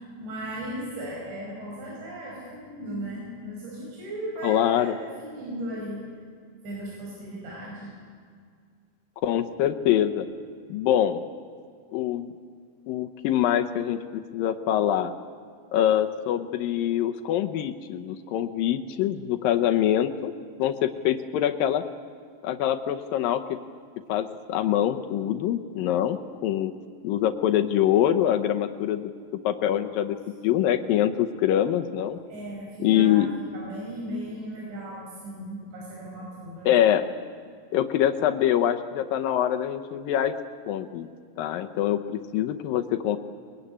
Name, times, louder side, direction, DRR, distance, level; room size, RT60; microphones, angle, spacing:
voice 1, 0.2-6.0 6.6-7.9 29.7-30.0 32.3-36.7, right 1 dB, 80° right, -4 dB, 7.5 m, -37 dB
voice 2, 4.4-4.9 9.2-10.3 10.7-11.2 11.9-12.3 12.9-15.1 15.7-20.3 20.6-21.8 22.4-23.4 24.1-26.7 27.0-29.1 29.4-30.2 30.4-32.2 32.8-33.3 36.7-37.1 37.7-40.3 40.7-41.1 41.4-43.2, left 11 dB, 80° left, 7 dB, 2.1 m, -24 dB
23.0 x 22.0 x 9.9 m, 2.1 s
omnidirectional pair, 5.1 m